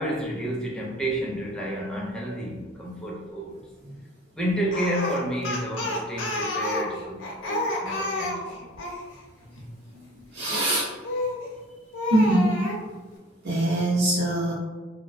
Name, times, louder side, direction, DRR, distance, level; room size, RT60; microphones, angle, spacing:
voice 1, 0.0-3.6 4.3-8.7 9.1-9.2, equal, 5° left, -4 dB, 0.4 m, -30 dB
Speech, 4.7-9.0 11.0-11.5 11.9-12.8, left 1 dB, 80° left, 0.5 m, -29 dB
voice 2, 9.5-10.9 12.1-12.5 13.4-14.5, right 1 dB, 55° right, -7 dB, 0.5 m, -24 dB
2.4 x 2.1 x 2.4 m, 1.3 s
head